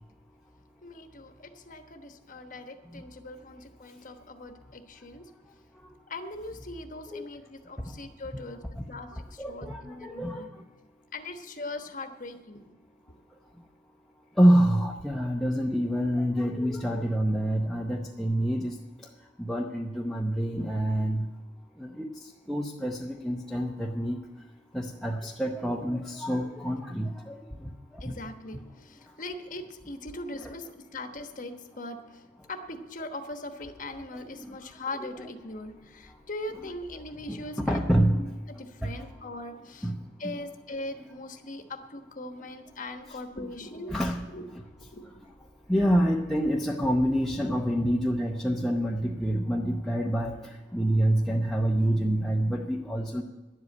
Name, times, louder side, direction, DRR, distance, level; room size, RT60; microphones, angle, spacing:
voice 1, 0.8-5.2 6.1-8.6 8.9-10.5 11.1-12.7 28.0-32.2 32.5-37.8 38.1-39.9 40.2-43.9 44.3-44.5 44.9-45.2 45.8-45.9, left 2 dB, 45° left, 6 dB, 1.2 m, -40 dB
voice 2, 9.4-10.5 14.4-18.7 19.4-21.3 21.8-22.1 22.5-24.2 24.7-27.4 28.5-28.6 30.4-30.5 34.4-34.5 37.3-38.2 38.8-38.9 39.8-40.0 43.1-43.2 43.9-44.2 45.7-50.4 50.7-53.2, equal, ahead, -1 dB, 0.7 m, -27 dB
11.0 x 8.1 x 8.4 m, 1.2 s
head